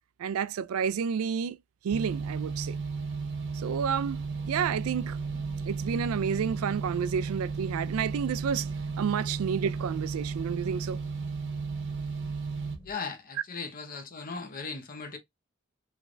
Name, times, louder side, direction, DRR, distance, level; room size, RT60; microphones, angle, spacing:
voice 1, 0.2-1.6 1.8-2.8 3.5-4.2 4.5-8.7 9.0-11.0 13.3-13.4, right 7 dB, 90° right, 0.3 m, -30 dB
sound 1, 1.9-12.8, right 4 dB, 60° right, 0.7 m, -34 dB
sound 2, 2.5-12.9, left 1 dB, 20° left, 1.7 m, -50 dB
voice 2, 12.8-15.2, left 4 dB, 45° left, 0.8 m, -38 dB
3.2 x 3.2 x 2.5 m
head